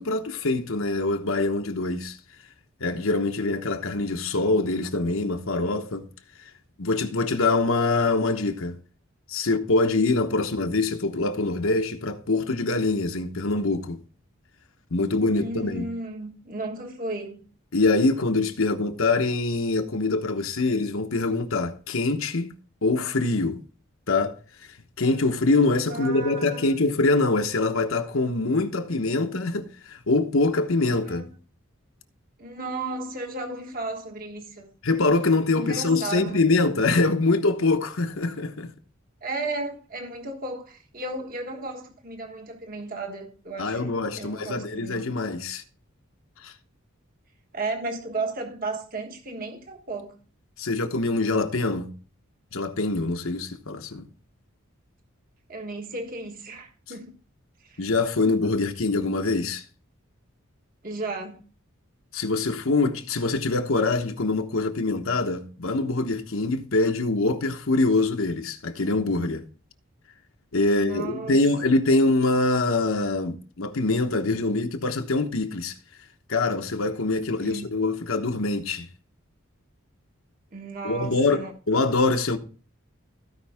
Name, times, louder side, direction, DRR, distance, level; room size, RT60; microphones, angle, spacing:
voice 1, 0.0-2.2 2.8-6.0 6.4-6.5 6.8-8.7 9.3-14.0 14.9-15.9 17.7-22.5 22.8-23.6 24.1-24.4 25.0-31.3 34.8-38.7 43.6-45.6 46.4-46.5 50.6-51.9 52.5-54.1 57.8-59.6 62.1-69.4 70.5-75.7 76.3-78.9 80.8-82.4, left 3 dB, 70° left, 1.1 m, -24 dB
voice 2, 15.3-17.4 25.9-26.7 31.0-31.2 32.4-34.7 35.5-36.5 39.2-45.1 47.5-50.1 55.5-57.1 57.6-57.8 60.8-61.4 70.7-71.4 77.2-77.9 80.5-81.5, right 2 dB, 40° right, 1.4 m, -34 dB
16.0 x 5.3 x 3.5 m
head